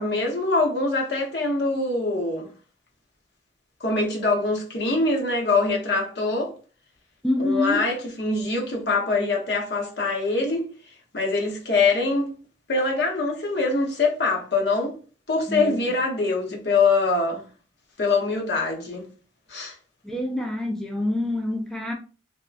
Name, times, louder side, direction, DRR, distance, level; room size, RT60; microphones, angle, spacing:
voice 1, 0.0-2.5 3.8-6.5 7.4-10.7 11.1-12.3 12.7-15.0 15.3-17.4 18.0-19.1 19.5-19.7, left 3 dB, 65° left, 0.8 m, -24 dB
voice 2, 7.2-7.9 15.5-15.8 20.0-21.9, left 1 dB, 5° left, 0.3 m, -26 dB
3.5 x 2.1 x 2.4 m
head